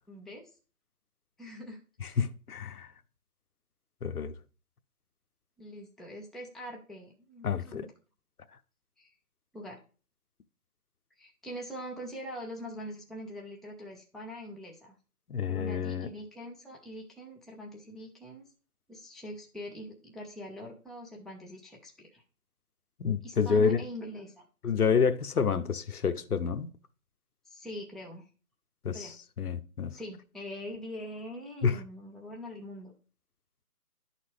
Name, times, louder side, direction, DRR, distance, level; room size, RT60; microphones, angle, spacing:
voice 1, 0.1-0.5 1.4-2.2 5.6-7.9 9.0-9.1 9.5-9.8 11.2-14.9 15.5-18.4 18.9-22.2 23.2-24.5 27.5-28.3 28.9-29.1 29.9-32.9, equal, ahead, 0.5 m, -43 dB
voice 2, 2.0-2.9 4.0-4.3 7.4-7.9 15.3-16.1 23.0-23.8 24.6-26.7 28.8-30.0 31.6-31.8, left 6 dB, 70° left, 0.8 m, -28 dB
11.0 x 4.2 x 3.2 m
figure-of-eight pair, 175°, 47 cm